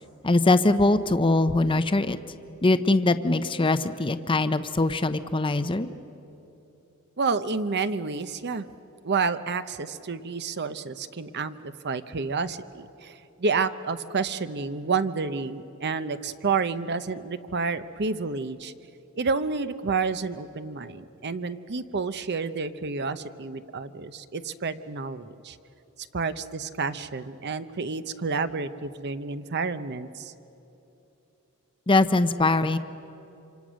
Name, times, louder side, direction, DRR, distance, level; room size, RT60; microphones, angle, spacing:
voice 1, 0.2-2.2 2.6-5.9 31.9-32.8, left 2 dB, 25° left, 11 dB, 0.7 m, -22 dB
voice 2, 7.2-8.7 9.0-18.7 19.1-25.6 26.1-30.3, right 4 dB, 50° right, 12 dB, 0.8 m, -29 dB
26.5 x 26.0 x 6.3 m, 2.9 s
head